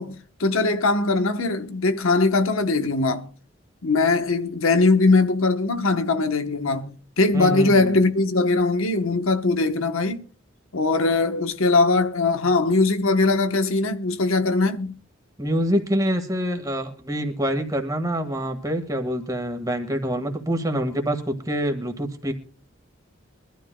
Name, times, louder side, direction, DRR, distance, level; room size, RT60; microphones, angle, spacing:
voice 1, 0.0-3.3 3.8-10.3 10.7-14.9, left 3 dB, 85° left, 1.0 m, -21 dB
voice 2, 7.3-7.9 15.4-22.3, equal, 15° right, 1.6 m, -26 dB
23.0 x 12.5 x 2.2 m
head